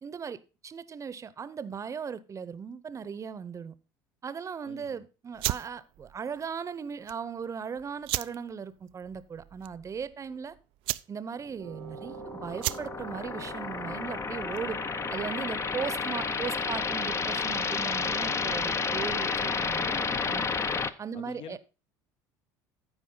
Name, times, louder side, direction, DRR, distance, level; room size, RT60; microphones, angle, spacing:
voice 1, 0.0-3.8 4.2-10.6 11.1-14.8 15.1-20.5 21.0-21.6, right 6 dB, 30° right, 0.8 m, -38 dB
voice 2, 4.7-5.0 20.0-20.7 21.1-21.6, left 8 dB, 55° left, 1.0 m, -46 dB
sound 1, 5.3-14.8, right 18 dB, 60° right, 0.4 m, -38 dB
sound 2, 11.6-20.9, left 5 dB, 25° left, 0.6 m, -31 dB
Wind instrument woodwind instrument, 11.6-19.6, right 10 dB, 90° right, 1.1 m, -48 dB
14.0 x 4.8 x 3.9 m
hypercardioid pair, 80°, 10 cm